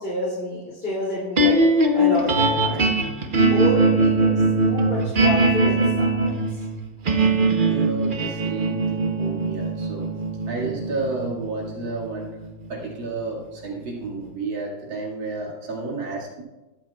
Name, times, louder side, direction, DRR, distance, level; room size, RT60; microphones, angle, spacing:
voice 1, 0.0-1.6 1.9-2.9 3.5-6.3, left 1 dB, 30° left, -7 dB, 3.0 m, -28 dB
sound 1, 1.4-13.7, right 2 dB, 45° right, 0.6 m, -21 dB
voice 2, 7.7-10.1 10.5-12.3 12.7-16.4, right 3 dB, 85° right, -4 dB, 2.9 m, -31 dB
22.0 x 7.5 x 2.4 m, 1.1 s
omnidirectional pair, 2.1 m